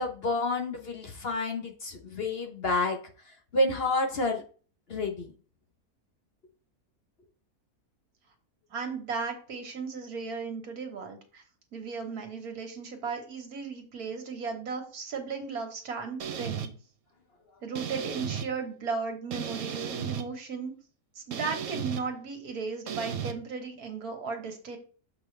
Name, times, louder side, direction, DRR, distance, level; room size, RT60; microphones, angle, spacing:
voice 1, 0.0-3.0 3.2-4.4 4.9-5.3, left 2 dB, 45° left, 4 dB, 1.1 m, -29 dB
voice 2, 8.7-11.4 11.7-16.7 17.6-20.7 21.2-24.8, right 5 dB, 80° right, 4 dB, 1.9 m, -36 dB
sound 1, 16.2-16.7 17.7-18.5 19.3-20.2 21.3-22.0 22.9-23.3, right 8 dB, 65° right, 1.1 m, -34 dB
7.2 x 5.5 x 3.3 m, 0.39 s
omnidirectional pair, 1.6 m